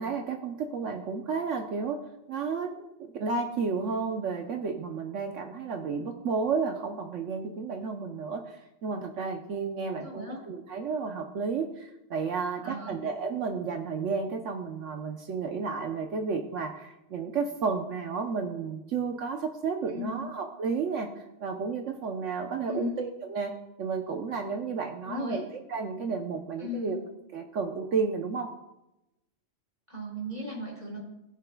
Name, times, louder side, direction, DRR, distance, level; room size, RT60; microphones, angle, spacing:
voice 1, 0.0-2.0 2.3-21.1 21.4-23.5 23.8-25.4 25.7-27.0 27.3-28.5, right 5 dB, 75° right, 4 dB, 1.2 m, -32 dB
voice 2, 10.0-10.4 12.6-13.0 19.9-20.3 22.7-23.0 25.0-25.4 26.6-27.0 29.9-31.0, left 2 dB, 35° right, -3 dB, 3.9 m, -37 dB
19.5 x 7.5 x 2.3 m, 0.90 s
omnidirectional pair, 1.3 m